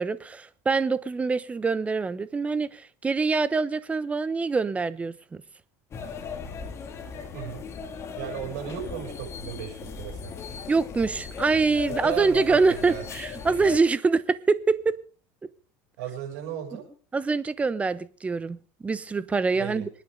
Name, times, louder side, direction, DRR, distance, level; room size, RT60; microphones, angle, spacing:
voice 1, 0.0-5.4 10.7-15.0 17.1-19.9, right 4 dB, 15° right, 0.9 m, -25 dB
sound 1, 5.9-13.8, left 6 dB, 35° left, 2.4 m, -37 dB
voice 2, 7.3-7.6 8.2-10.3 12.0-13.0 16.0-16.8 19.5-19.9, right 10 dB, 75° right, 6.9 m, -35 dB
27.0 x 9.6 x 3.8 m
supercardioid pair, 125°, 8 cm